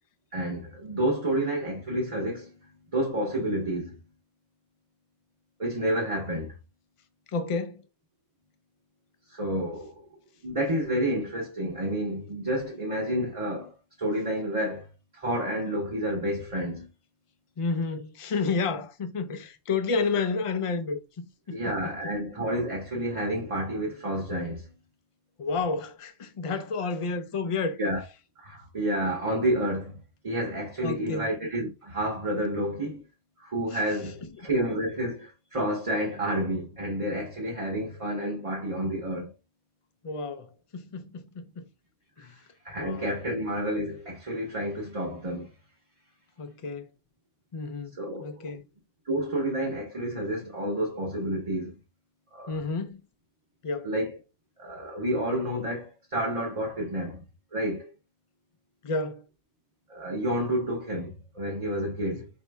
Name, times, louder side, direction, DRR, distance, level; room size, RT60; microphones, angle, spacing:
voice 1, 0.3-2.5 2.9-4.0 5.6-6.6 9.3-10.0 10.4-14.9 15.1-16.9 21.5-24.7 27.8-28.0 28.4-30.0 30.2-33.0 33.4-39.3 42.2-45.5 47.9-48.5 49.1-51.7 52.3-52.6 53.8-54.2 54.6-57.2 57.5-57.9 59.9-62.3, right 1 dB, 30° right, 0.9 m, -30 dB
voice 2, 7.3-7.8 17.6-22.1 25.4-27.8 30.8-31.3 34.2-34.3 40.0-41.7 42.2-42.3 42.8-43.1 46.4-46.9 47.5-47.9 48.2-48.6 52.5-53.0 53.6-53.9 58.8-59.2, left 4 dB, 40° left, 0.5 m, -31 dB
4.3 x 2.7 x 3.3 m
omnidirectional pair, 1.2 m